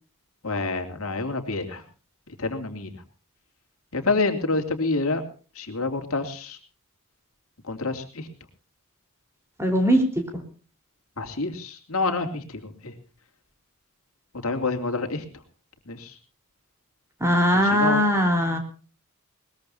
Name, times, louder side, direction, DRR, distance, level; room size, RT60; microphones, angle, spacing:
voice 1, 0.4-1.8 2.4-2.9 3.9-5.2 5.6-6.6 7.7-8.0 11.2-12.4 12.8-12.9 14.4-15.2 15.9-16.1 17.5-18.0, left 3 dB, 70° left, 5 dB, 2.9 m, -27 dB
voice 2, 9.6-10.0 17.2-18.6, equal, 10° right, 4 dB, 4.2 m, -20 dB
21.5 x 20.5 x 2.8 m, 0.38 s
head